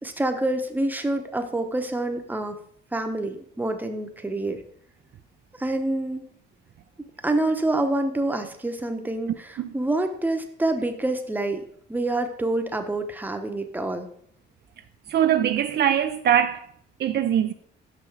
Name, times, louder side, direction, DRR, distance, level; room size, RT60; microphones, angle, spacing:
voice 1, 0.0-2.6 2.9-4.6 5.6-6.3 7.2-11.6 11.9-14.1, right 2 dB, 10° right, 0.9 m, -27 dB
voice 2, 15.1-16.7 17.0-17.5, right 10 dB, 55° right, 0.4 m, -22 dB
6.0 x 5.7 x 4.7 m
cardioid pair, 90°, 20 cm